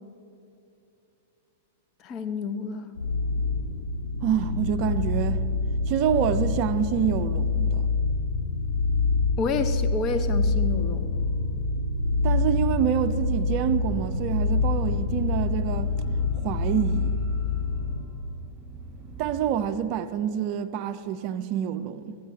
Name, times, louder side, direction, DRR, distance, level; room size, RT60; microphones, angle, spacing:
voice 1, 2.0-2.9 9.4-11.1, left 4 dB, 35° left, 0.7 m, -29 dB
sound 1, 3.0-18.0, left 3 dB, 75° left, 1.8 m, -26 dB
voice 2, 4.2-5.4 5.9-7.9 12.2-15.9 16.3-17.2 19.2-22.2, right 9 dB, 45° right, 0.4 m, -27 dB
sound 2, 13.3-19.7, right 4 dB, 15° right, 1.0 m, -44 dB
14.5 x 9.0 x 2.8 m
hypercardioid pair, 105°, 0 cm